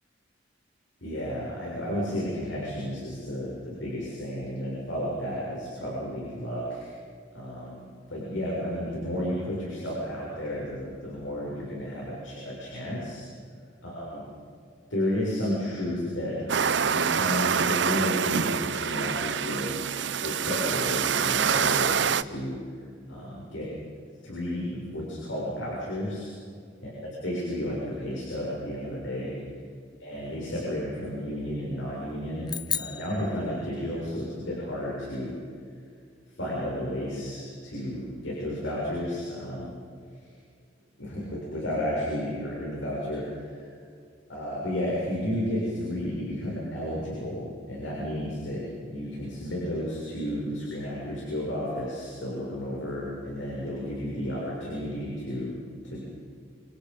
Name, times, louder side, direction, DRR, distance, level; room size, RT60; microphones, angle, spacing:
voice 1, 1.0-6.9 7.3-7.8 8.1-13.2 13.8-14.2 14.9-19.7 20.2-22.6 23.1-23.7 24.2-26.3 26.8-26.9 27.2-29.3 30.0-32.5 32.8-35.3 36.4-39.7 41.0-43.7 44.3-55.6 55.8-56.0, left 1 dB, 85° left, -5 dB, 7.0 m, -32 dB
sound 1, 16.5-22.2, right 7 dB, 65° right, 0.6 m, -26 dB
sound 2, 32.5-34.1, left 9 dB, 20° left, 0.5 m, -35 dB
28.0 x 27.5 x 5.5 m, 2.3 s
head